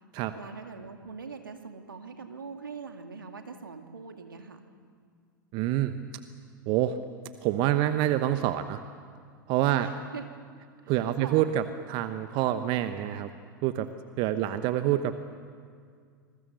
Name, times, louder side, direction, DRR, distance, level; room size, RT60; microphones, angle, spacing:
voice 1, 0.3-4.6 9.8-10.3 10.8-11.5 14.3-14.7, right 5 dB, 80° right, 5 dB, 2.3 m, -43 dB
voice 2, 5.5-5.9 6.7-7.0 7.4-8.8 9.5-9.9 10.9-13.3 13.6-13.9 14.2-15.2, right 12 dB, 45° right, 10 dB, 1.0 m, -26 dB
27.0 x 21.5 x 6.8 m, 2.1 s
figure-of-eight pair, 90°, 11 cm